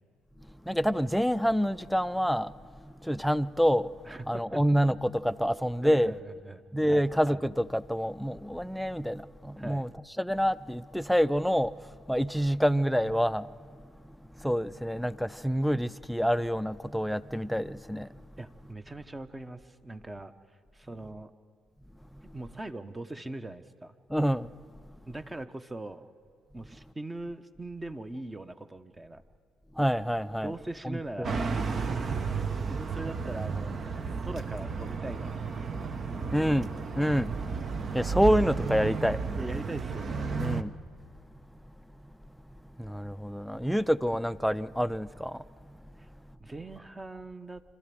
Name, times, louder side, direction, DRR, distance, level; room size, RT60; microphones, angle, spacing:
voice 1, 0.7-2.5 3.0-3.9 4.3-6.1 6.7-9.9 10.2-13.5 14.4-18.1 24.1-24.5 29.8-30.5 30.8-31.3 36.3-37.3 37.9-39.2 40.4-40.7 42.8-45.4, equal, ahead, 0.5 m, -27 dB
voice 2, 4.1-4.6 5.8-7.1 9.6-9.9 18.4-20.3 20.7-21.3 22.3-23.9 25.1-26.1 26.5-29.2 30.4-31.4 32.7-35.7 36.1-36.6 39.4-40.3 43.7-43.8 46.4-47.6, right 2 dB, 20° right, 1.0 m, -41 dB
sound 1, 31.2-40.6, right 5 dB, 45° right, 1.0 m, -32 dB
26.0 x 13.0 x 7.8 m
hypercardioid pair, 55°, 0 cm